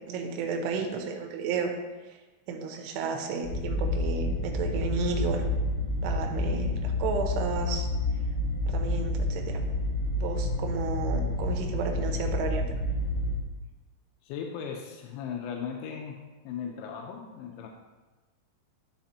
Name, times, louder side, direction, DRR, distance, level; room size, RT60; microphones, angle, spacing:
voice 1, 0.1-1.7 2.1-2.2 2.5-5.4 6.0-7.9 8.7-9.6 10.1-12.6, right 5 dB, 80° right, 3 dB, 2.5 m, -32 dB
sound 1, 3.4-13.4, left 2 dB, 40° left, 2.1 m, -29 dB
voice 2, 14.2-16.2 16.4-17.7, left 7 dB, 90° left, 2 dB, 3.0 m, -37 dB
11.5 x 4.2 x 2.7 m, 1.2 s
omnidirectional pair, 5.3 m